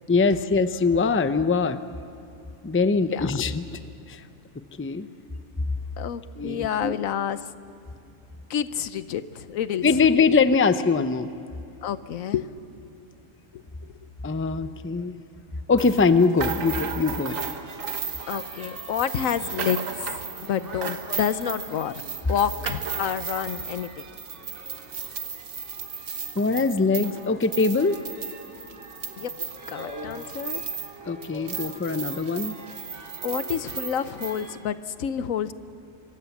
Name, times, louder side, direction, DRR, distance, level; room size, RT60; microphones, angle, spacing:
voice 1, 0.1-1.8 2.6-3.8 4.1-4.2 4.8-5.1 6.4-6.9 9.8-11.3 14.2-15.2 15.7-17.4 26.4-28.0 31.1-32.5, left 4 dB, 15° left, 11 dB, 0.5 m, -22 dB
voice 2, 6.0-7.4 8.5-9.9 11.8-12.5 13.5-13.9 18.3-22.0 22.3-24.0 29.2-29.4 29.7-30.6 33.2-35.5, left 9 dB, 85° left, 14 dB, 1.2 m, -29 dB
sound 1, 15.8-31.0 31.2-34.4, right 6 dB, 75° right, 1.6 m, -35 dB
sound 2, 17.2-34.6, right 2 dB, 60° right, 3.0 m, -44 dB
25.0 x 25.0 x 7.2 m, 2.7 s
omnidirectional pair, 1.4 m